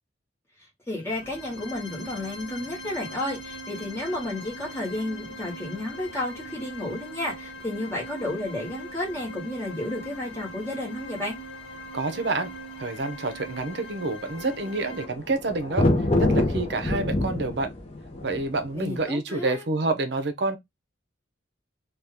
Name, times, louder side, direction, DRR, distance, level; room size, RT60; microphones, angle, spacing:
voice 1, 0.9-11.4 18.7-19.6, left 1 dB, 15° left, 1.2 m, -32 dB
sound 1, 1.0-15.0, equal, 80° left, 0.9 m, -41 dB
sound 2, 1.1-19.0, left 2 dB, 30° left, 0.7 m, -30 dB
voice 2, 11.9-12.5 12.8-15.9 16.2-17.7 18.2-20.6, right 3 dB, 60° right, 0.6 m, -28 dB
2.8 x 2.3 x 3.4 m
head